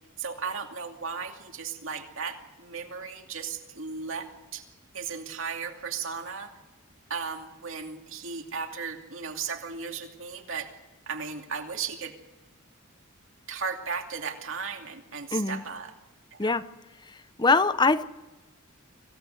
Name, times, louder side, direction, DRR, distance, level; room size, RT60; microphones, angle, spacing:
voice 1, 0.2-4.7 4.9-6.5 7.1-10.7 11.1-12.1 13.5-15.9 16.3-16.5, right 5 dB, 60° right, 2.6 m, -36 dB
voice 2, 17.4-18.0, left 3 dB, 20° left, 0.7 m, -22 dB
25.0 x 17.0 x 7.9 m
head